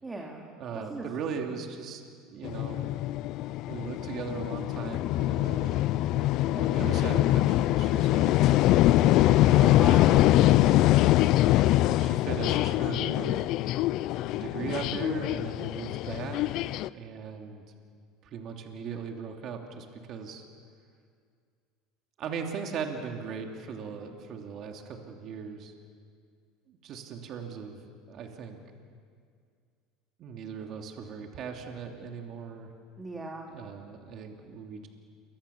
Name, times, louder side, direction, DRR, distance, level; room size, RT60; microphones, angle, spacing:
voice 1, 0.0-0.4 0.7-1.1 9.5-10.3 33.0-33.5, right 2 dB, 15° right, 0 dB, 3.0 m, -37 dB
voice 2, 0.6-2.0 2.3-2.9 3.7-5.8 6.1-8.9 10.1-10.8 12.0-13.4 14.3-16.6 16.9-17.6 18.2-20.4 22.2-25.7 26.7-27.8 28.1-28.6 30.2-32.7 33.5-34.9, right 6 dB, 45° right, 3 dB, 2.9 m, -38 dB
sound 1, 2.4-16.9, left 15 dB, 55° left, 0.6 m, -24 dB
29.0 x 24.0 x 7.1 m, 2.2 s
supercardioid pair, 120°, 0 cm